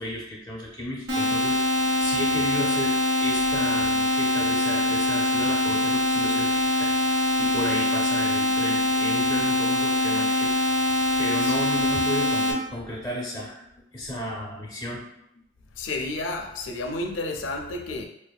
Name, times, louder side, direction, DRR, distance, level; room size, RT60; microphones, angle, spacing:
voice 1, 0.0-10.5 10.9-13.7 13.9-15.0, left 1 dB, 15° left, -6 dB, 0.6 m, -33 dB
sound 1, 1.1-12.5, left 2 dB, 75° right, 0.8 m, -23 dB
voice 2, 15.8-18.1, left 2 dB, 75° left, 4 dB, 0.5 m, -31 dB
4.8 x 2.5 x 2.3 m, 0.79 s
head